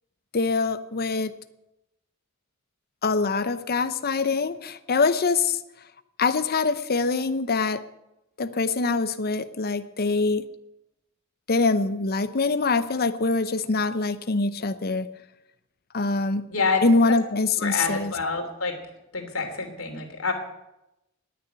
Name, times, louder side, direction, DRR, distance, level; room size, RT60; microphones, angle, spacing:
voice 1, 0.3-1.3 3.0-5.6 6.2-7.8 8.4-10.4 11.5-15.1 15.9-16.4 16.8-18.1, left 3 dB, 50° left, 12 dB, 0.8 m, -24 dB
voice 2, 17.6-18.7 19.1-20.3, left 4 dB, 80° left, 4 dB, 3.1 m, -27 dB
18.5 x 6.9 x 9.3 m, 0.89 s
head